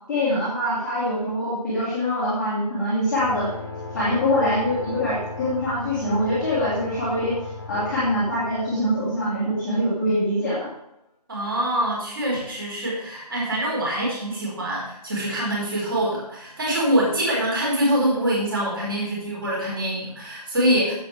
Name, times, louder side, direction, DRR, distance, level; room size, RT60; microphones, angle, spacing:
voice 1, 0.1-3.5 3.9-7.3 7.7-10.7, left 1 dB, ahead, -16 dB, 1.6 m, -24 dB
sound 1, 3.2-10.4, left 3 dB, 25° left, 1.6 m, -37 dB
voice 2, 11.3-20.9, right 1 dB, 35° right, -3 dB, 4.5 m, -24 dB
14.5 x 7.8 x 3.4 m, 0.80 s
figure-of-eight pair, 165°, 21 cm